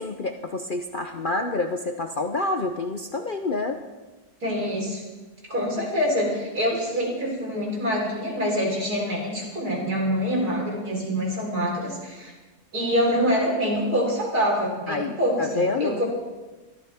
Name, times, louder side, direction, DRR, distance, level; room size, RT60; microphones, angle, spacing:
voice 1, 0.0-3.8 14.9-16.0, left 3 dB, 45° left, 5 dB, 0.7 m, -28 dB
voice 2, 4.4-5.0 5.5-12.3 12.7-16.0, equal, 75° right, -2 dB, 4.6 m, -25 dB
23.5 x 13.5 x 3.5 m, 1.2 s
omnidirectional pair, 1.6 m